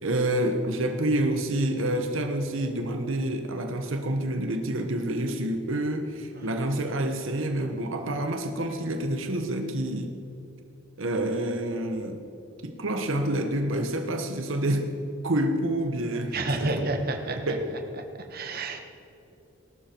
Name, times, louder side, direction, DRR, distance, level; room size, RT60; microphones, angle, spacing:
voice 1, 0.0-10.1 11.0-12.2 12.6-14.9 15.2-16.9 17.3-17.8, right 1 dB, 80° right, 5 dB, 1.1 m, -28 dB
voice 2, 16.3-17.4 18.3-18.8, right 2 dB, 50° right, 5 dB, 1.4 m, -29 dB
19.5 x 12.0 x 4.5 m, 2.8 s
head